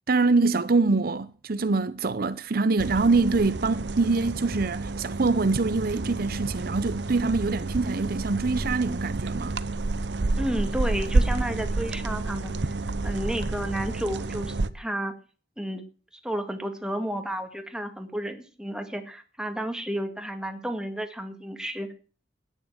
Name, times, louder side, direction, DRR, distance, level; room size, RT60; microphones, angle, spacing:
voice 1, 0.1-9.6, right 3 dB, 55° right, 0.6 m, -24 dB
sound 1, 2.8-14.7, right 2 dB, 80° right, 0.8 m, -29 dB
voice 2, 10.4-15.1 15.6-15.8 16.1-21.9, right 1 dB, 5° right, 2.0 m, -32 dB
13.0 x 10.0 x 7.9 m
head